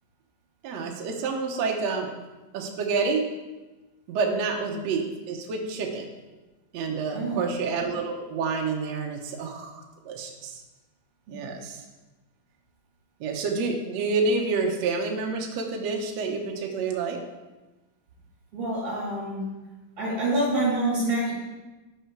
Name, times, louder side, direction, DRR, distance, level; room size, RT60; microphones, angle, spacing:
voice 1, 0.6-2.1 2.5-3.3 4.1-6.0 6.7-10.6 11.3-11.8 13.2-17.2, right 4 dB, 70° right, 1 dB, 1.6 m, -28 dB
voice 2, 7.1-7.5 11.4-11.5 18.5-19.4 20.0-21.3, right 1 dB, 40° right, -8 dB, 3.5 m, -26 dB
13.0 x 5.6 x 4.6 m, 1.1 s
omnidirectional pair, 4.3 m